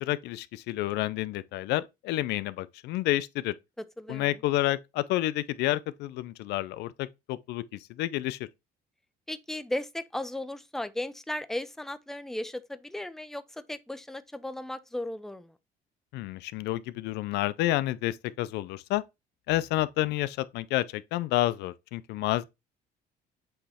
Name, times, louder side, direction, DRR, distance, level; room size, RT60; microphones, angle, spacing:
voice 1, 0.0-3.5 4.1-7.6 8.0-8.4 16.1-19.0 19.5-22.4, left 16 dB, 85° left, 0.5 m, -29 dB
voice 2, 3.8-4.4 9.3-15.6, left 1 dB, ahead, 0.6 m, -36 dB
7.8 x 3.1 x 4.2 m
cardioid pair, 110°, 17 cm